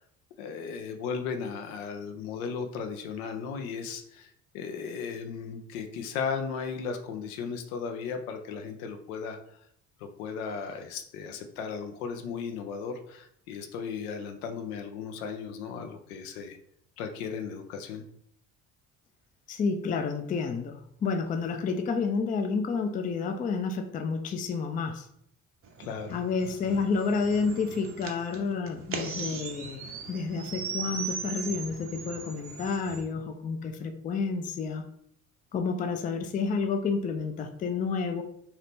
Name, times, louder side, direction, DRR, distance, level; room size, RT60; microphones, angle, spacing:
voice 1, 0.4-9.4 10.0-16.6 17.0-18.0 25.8-26.2, left 6 dB, 75° left, 6 dB, 0.6 m, -36 dB
voice 2, 19.5-25.1 26.1-34.8 35.5-38.2, left 4 dB, 20° left, 6 dB, 0.3 m, -30 dB
sound 1, 25.6-33.0, right 5 dB, 30° right, 0.6 m, -39 dB
2.8 x 2.8 x 3.4 m, 0.71 s
hypercardioid pair, 55°, 44 cm